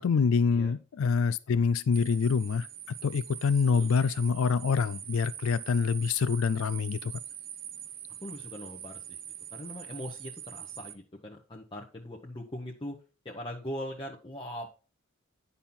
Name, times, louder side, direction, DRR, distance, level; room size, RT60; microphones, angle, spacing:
voice 1, 0.0-2.7 3.0-7.1, left 5 dB, 70° left, 0.4 m, -26 dB
sound 1, 1.9-11.0, right 10 dB, 45° right, 0.7 m, -43 dB
voice 2, 8.2-9.2 9.5-13.0 13.2-14.7, left 1 dB, 25° left, 1.0 m, -40 dB
10.0 x 5.5 x 4.3 m
head